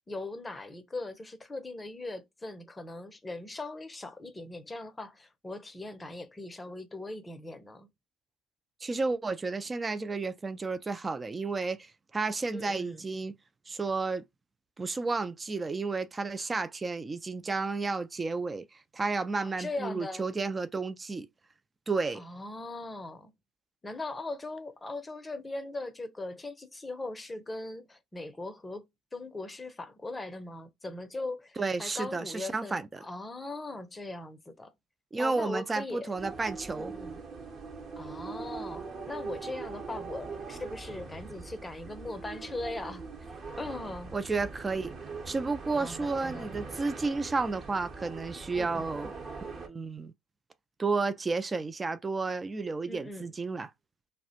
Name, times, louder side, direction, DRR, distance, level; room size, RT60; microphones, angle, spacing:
voice 1, 0.1-7.9 12.5-13.0 19.4-20.3 22.1-23.3 23.8-34.7 35.2-36.1 36.7-37.2 38.0-43.0 43.6-44.1 45.8-46.5 48.5-48.9 52.9-53.3, left 2 dB, 20° left, 0.6 m, -40 dB
voice 2, 8.8-13.3 13.7-14.2 14.8-21.3 21.9-22.2 31.6-33.0 35.1-36.9 44.1-44.9 45.3-49.1 49.4-50.1 50.8-53.7, right 3 dB, 25° right, 0.3 m, -32 dB
sound 1, 36.2-49.7, right 4 dB, 45° right, 0.9 m, -42 dB
2.4 x 2.1 x 2.7 m
hypercardioid pair, 60°, 0 cm